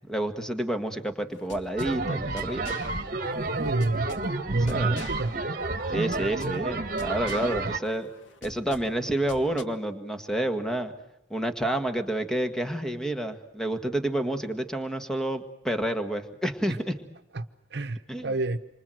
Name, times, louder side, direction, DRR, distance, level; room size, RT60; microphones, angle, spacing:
voice 1, 0.1-2.8 4.5-5.1 5.9-8.1 8.4-10.9 11.3-16.9 18.1-18.3, right 1 dB, 5° left, 7 dB, 1.7 m, -29 dB
sound 1, 1.3-9.6, left 2 dB, 90° left, 1.9 m, -46 dB
sound 2, 1.8-7.8, right 3 dB, 50° right, 1.5 m, -30 dB
voice 2, 3.6-4.1 4.5-5.3 17.3-17.4 17.7-18.6, right 2 dB, 65° right, 10 dB, 1.0 m, -28 dB
28.0 x 25.0 x 7.9 m, 0.85 s
head